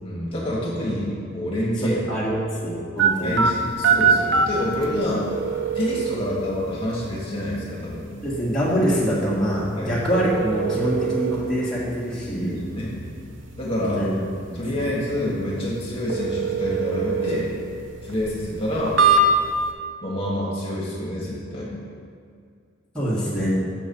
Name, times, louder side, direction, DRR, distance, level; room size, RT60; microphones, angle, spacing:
voice 1, 0.0-2.4 3.2-5.3 5.7-8.0 9.8-10.0 12.4-13.0 13.6-14.0 14.5-17.5 18.0-19.0 20.0-21.8, left 1 dB, 30° left, -6 dB, 1.7 m, -27 dB
voice 2, 1.8-3.4 8.2-12.6 13.9-14.1 14.5-14.8 22.9-23.5, equal, 5° left, -9 dB, 1.7 m, -24 dB
sound 1, 3.0-19.7, right 4 dB, 70° right, 0.8 m, -25 dB
6.5 x 5.5 x 6.9 m, 2.2 s
head